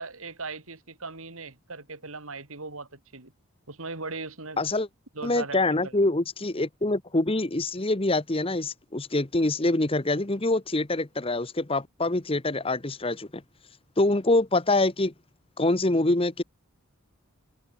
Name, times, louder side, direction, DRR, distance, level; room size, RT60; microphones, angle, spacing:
voice 1, 0.0-3.3 3.7-4.6 5.2-5.9, right 3 dB, 75° right, 3.6 m, -38 dB
voice 2, 4.6-4.9 5.2-13.4 14.0-15.1 15.6-16.4, left 2 dB, 25° left, 1.1 m, -25 dB
head